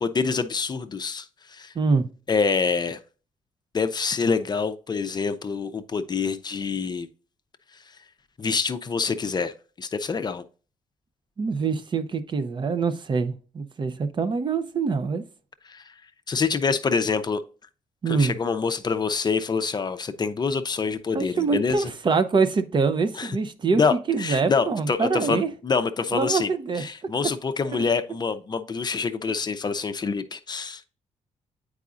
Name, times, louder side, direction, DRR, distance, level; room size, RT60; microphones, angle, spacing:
voice 1, 0.0-1.3 1.5-1.7 2.3-3.0 3.7-7.1 8.4-10.4 15.7-15.8 16.3-17.4 18.1-21.9 23.2-23.3 23.7-26.5 26.7-30.9, left 5 dB, 35° left, 0.5 m, -26 dB
voice 2, 1.8-2.1 11.4-15.2 18.0-18.3 21.1-25.5 26.1-26.8 27.7-27.8, right 4 dB, 40° right, 0.5 m, -24 dB
8.1 x 4.8 x 2.4 m
cardioid pair, 90°, 13 cm